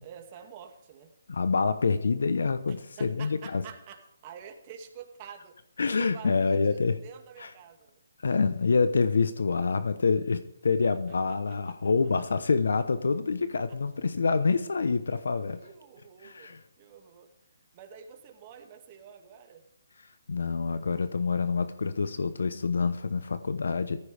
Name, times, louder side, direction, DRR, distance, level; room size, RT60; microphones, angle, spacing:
voice 1, 0.0-1.1 2.7-5.6 6.0-8.0 10.8-11.8 13.7-13.8 15.6-17.3 17.7-19.6, right 8 dB, 30° right, 4 dB, 2.1 m, -48 dB
voice 2, 1.3-3.6 5.8-7.0 7.4-7.5 8.2-15.6 16.2-16.6 20.3-24.0, left 4 dB, 70° left, 12 dB, 0.9 m, -27 dB
17.5 x 14.5 x 3.4 m, 0.83 s
hypercardioid pair, 155°, 0 cm